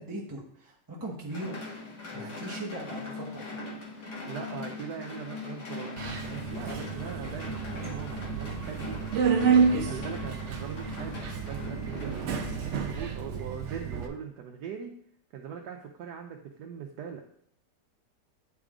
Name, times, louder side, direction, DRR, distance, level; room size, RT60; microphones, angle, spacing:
voice 1, 0.0-1.6 2.1-3.5, right 1 dB, 20° right, -3 dB, 0.7 m, -39 dB
sound 1, 1.3-12.9, left 3 dB, 70° left, 2.1 m, -40 dB
voice 2, 4.0-9.0 9.7-11.2 11.4-15.0 15.3-17.2, right 7 dB, 75° right, 2 dB, 1.3 m, -41 dB
Subway metro underground, 6.0-14.1, right 6 dB, 55° right, 0.9 m, -30 dB
9.5 x 4.9 x 3.7 m, 0.68 s
omnidirectional pair, 1.8 m